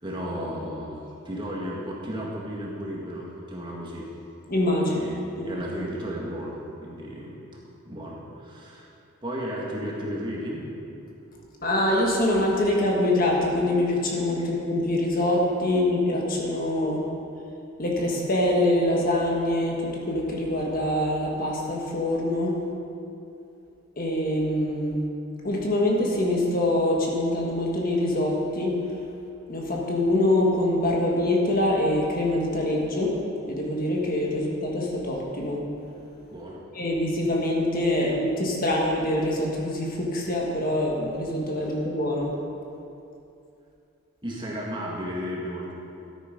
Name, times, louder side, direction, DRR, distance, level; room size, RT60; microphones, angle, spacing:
voice 1, 0.0-4.1 4.9-7.4 7.9-8.9 9.2-10.6 14.4-14.5 36.3-36.6 44.2-45.7, equal, 20° right, -4 dB, 1.8 m, -34 dB
voice 2, 4.5-5.0 5.4-5.5 11.6-17.0 17.8-22.5 24.0-25.0 25.4-28.8 29.5-33.1 33.5-35.6 36.7-42.3, left 1 dB, 40° left, -1 dB, 1.5 m, -24 dB
13.0 x 9.1 x 5.2 m, 2.7 s
head